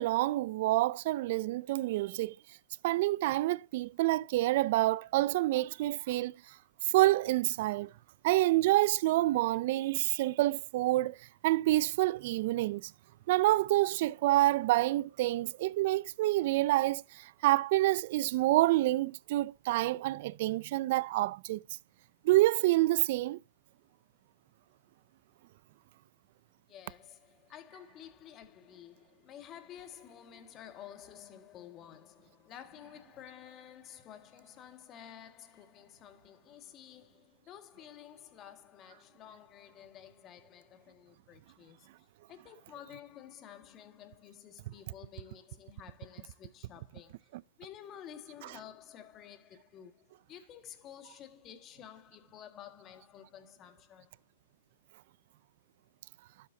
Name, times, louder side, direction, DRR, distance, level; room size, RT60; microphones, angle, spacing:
voice 1, 0.0-2.3 2.8-6.4 6.9-7.9 8.2-11.2 11.4-12.9 13.3-21.6 22.2-23.4, right 17 dB, 55° right, 0.4 m, -27 dB
voice 2, 26.7-47.3 47.6-54.2, left 10 dB, 30° left, 1.8 m, -52 dB
12.0 x 8.3 x 2.7 m
hypercardioid pair, 125°, 0 cm